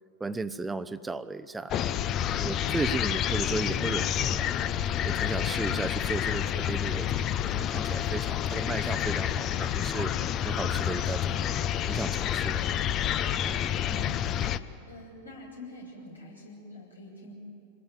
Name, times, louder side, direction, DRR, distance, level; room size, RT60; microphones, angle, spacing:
voice 1, 0.2-1.7 2.4-4.5 5.0-10.1 10.4-11.4 11.9-12.6, right 3 dB, 10° right, 12 dB, 0.9 m, -35 dB
sound 1, 1.7-14.6, left 10 dB, 35° left, 0.8 m, -29 dB
voice 2, 13.8-17.3, left 1 dB, 85° left, -3 dB, 7.6 m, -46 dB
27.0 x 21.0 x 9.3 m, 2.5 s
figure-of-eight pair, 90°, 0 cm